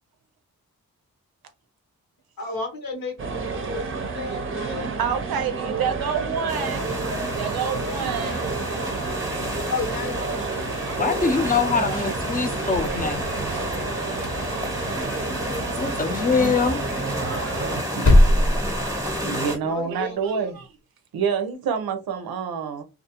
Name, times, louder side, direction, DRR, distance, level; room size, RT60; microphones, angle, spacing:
voice 1, 2.4-3.3 3.7-4.9 7.8-9.0 9.7-11.3 19.6-20.5, left 4 dB, 75° left, 1.0 m, -34 dB
sound 1, 3.2-17.8, right 4 dB, 35° right, 0.6 m, -30 dB
voice 2, 5.0-6.9 7.3-8.4 12.9-13.2 15.0-15.1 16.5-16.8 17.7-18.1 18.7-18.8 19.2-20.6 21.1-22.8, right 7 dB, 85° right, 0.6 m, -28 dB
sound 2, 6.5-19.6, equal, 10° right, 0.9 m, -31 dB
voice 3, 11.0-13.2 15.8-16.8, left 4 dB, 25° left, 0.5 m, -23 dB
sound 3, 12.7-13.8 14.1-15.3 15.5-15.6 16.0-16.2 16.4-16.5 16.9-19.5, left 1 dB, 50° left, 0.8 m, -22 dB
2.4 x 2.3 x 2.8 m
cardioid pair, 45°, 35 cm